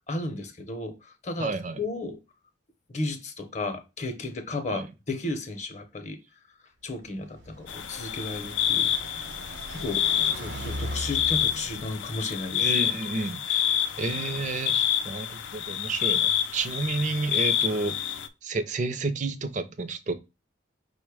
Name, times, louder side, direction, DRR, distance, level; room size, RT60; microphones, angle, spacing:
voice 1, 0.1-2.2 2.9-6.2 6.8-8.9 9.7-10.0 10.3-13.0, left 2 dB, 40° left, 0.7 m, -34 dB
voice 2, 1.4-1.8 4.7-4.8 12.6-13.6 14.0-17.9 18.4-20.1, right 3 dB, 40° right, 0.5 m, -30 dB
Car passing by, 7.1-12.5, equal, 65° right, 0.9 m, -39 dB
sound 1, 7.7-18.3, left 10 dB, 90° left, 0.5 m, -28 dB
5.2 x 2.1 x 4.7 m
head